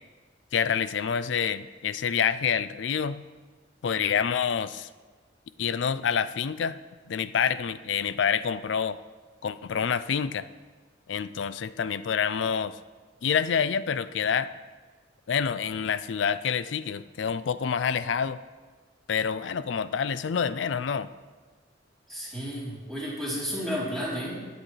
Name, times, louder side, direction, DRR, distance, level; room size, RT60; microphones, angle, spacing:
voice 1, 0.5-3.2 3.8-4.9 5.6-6.8 7.1-9.0 9.4-10.5 11.1-12.8 13.2-14.5 15.3-18.4 19.1-21.1, left 7 dB, 70° left, 14 dB, 0.4 m, -27 dB
voice 2, 22.1-24.4, equal, 5° left, -8 dB, 3.3 m, -32 dB
19.0 x 7.9 x 3.2 m, 1.4 s
head